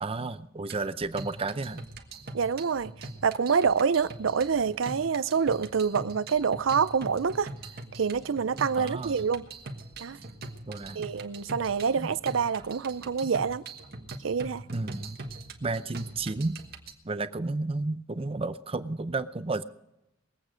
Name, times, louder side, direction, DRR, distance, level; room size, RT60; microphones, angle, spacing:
voice 1, 0.0-1.8 8.8-9.1 10.7-11.1 12.0-12.1 14.7-15.2 15.6-16.6 17.0-19.6, right 3 dB, 30° right, 12 dB, 0.6 m, -32 dB
sound 1, 0.7-16.9, right 2 dB, 55° right, 1.5 m, -43 dB
voice 2, 2.3-7.5 8.0-9.5 10.0-10.2 11.0-13.6 14.2-14.6, right 6 dB, 75° right, 15 dB, 0.5 m, -27 dB
21.5 x 8.5 x 5.1 m, 0.90 s
head